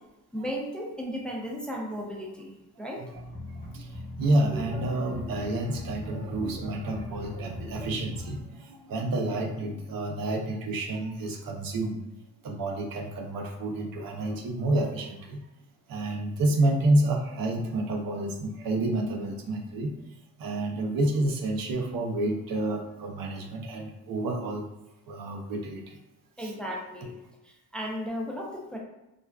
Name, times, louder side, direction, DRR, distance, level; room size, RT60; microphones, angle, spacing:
voice 1, 0.3-3.0 26.4-27.1 27.4-28.8, equal, 5° left, -2 dB, 0.5 m, -35 dB
voice 2, 2.8-3.1 3.5-12.0 12.4-15.4 15.9-19.9 20.4-24.7 25.1-26.0 26.4-26.5, right 1 dB, 65° right, 2 dB, 0.6 m, -29 dB
sound 1, 3.1-8.4, left 1 dB, 20° left, 1.1 m, -41 dB
2.4 x 2.2 x 2.2 m, 0.97 s
cardioid pair, 75°, 37 cm